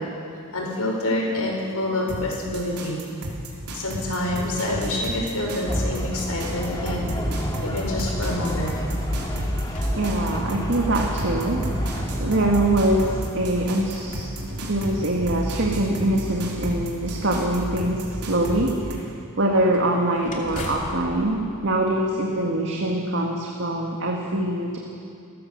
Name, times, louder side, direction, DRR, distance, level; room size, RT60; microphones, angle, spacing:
voice 1, 0.5-3.0 3.7-7.1 7.4-8.7, left 1 dB, 80° left, -1 dB, 5.3 m, -27 dB
sound 1, 2.1-19.0, equal, 85° right, 3.7 m, -32 dB
sound 2, 5.7-13.3, equal, 20° left, 2.0 m, -30 dB
sound 3, 8.9-10.8 11.6-11.7 13.5-16.1 19.5-22.6, left 1 dB, 35° left, 2.7 m, -41 dB
voice 2, 10.0-14.3 14.6-19.0 19.4-24.8, right 1 dB, 55° right, 0 dB, 1.9 m, -24 dB
29.5 x 14.5 x 6.9 m, 2.4 s
head